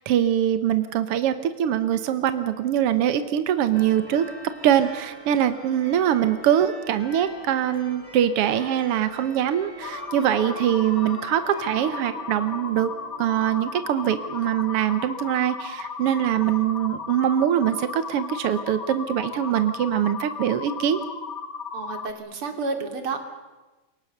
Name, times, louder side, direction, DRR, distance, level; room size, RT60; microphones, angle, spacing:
voice 1, 0.0-4.3 4.6-12.9 13.2-21.0, right 10 dB, 75° right, 11 dB, 1.3 m, -23 dB
sound 1, 3.7-14.8, right 2 dB, 15° left, 4.3 m, -44 dB
sound 2, 9.8-22.1, left 5 dB, 65° left, 0.8 m, -35 dB
voice 2, 21.7-23.2, right 4 dB, 40° right, 6 dB, 3.1 m, -30 dB
27.5 x 23.5 x 6.7 m, 1.2 s
omnidirectional pair, 4.1 m